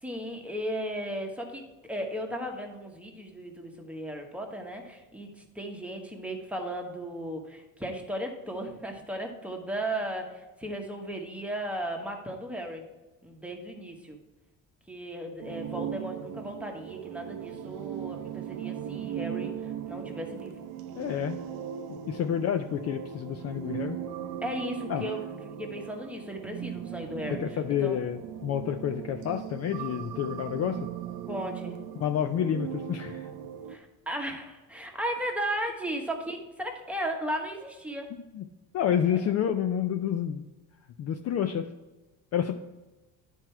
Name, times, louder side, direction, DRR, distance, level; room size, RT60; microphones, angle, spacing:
voice 1, 0.0-12.8 13.2-14.2 14.9-20.7 24.4-27.4 27.8-28.0 31.3-31.8 33.7-38.1 39.1-39.2, right 1 dB, 5° right, 2 dB, 1.1 m, -36 dB
sound 1, 15.4-33.8, right 10 dB, 75° right, 0.7 m, -38 dB
voice 2, 21.0-21.4 21.9-24.0 24.9-25.0 27.3-30.8 32.0-33.3 38.3-38.4 38.7-40.4 41.0-41.7 42.3-42.6, left 9 dB, 40° left, 7 dB, 0.4 m, -29 dB
9.9 x 4.5 x 4.5 m, 1.1 s
cardioid pair, 110°, 38 cm